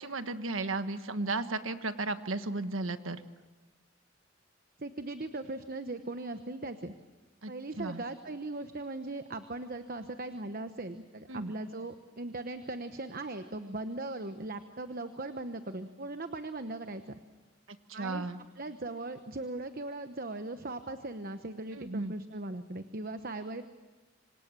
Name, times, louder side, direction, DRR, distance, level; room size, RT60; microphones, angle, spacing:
voice 1, 0.0-3.2 7.4-7.5 7.8-8.0 11.3-11.5 17.9-18.4 21.7-22.1, right 3 dB, 85° right, 9 dB, 1.4 m, -34 dB
voice 2, 4.8-6.9 7.5-17.2 17.9-18.3 18.6-23.7, right 2 dB, 45° right, 9 dB, 1.1 m, -39 dB
26.5 x 26.5 x 7.5 m, 1.2 s
head